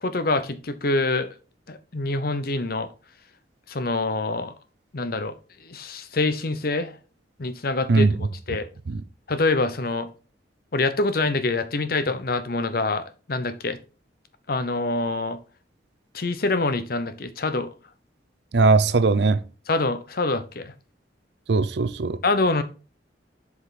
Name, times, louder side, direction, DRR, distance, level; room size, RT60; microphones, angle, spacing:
voice 1, 0.0-1.3 1.7-2.9 3.7-4.5 4.9-5.3 5.7-6.9 7.4-8.1 8.5-8.7 9.3-10.1 10.7-13.8 14.5-15.4 16.1-17.7 19.7-20.7 22.2-22.6, left 3 dB, 55° left, 0.8 m, -25 dB
voice 2, 7.9-8.3 8.9-9.0 18.5-19.4 21.5-22.2, right 3 dB, 65° right, 0.6 m, -19 dB
7.9 x 4.9 x 4.2 m
head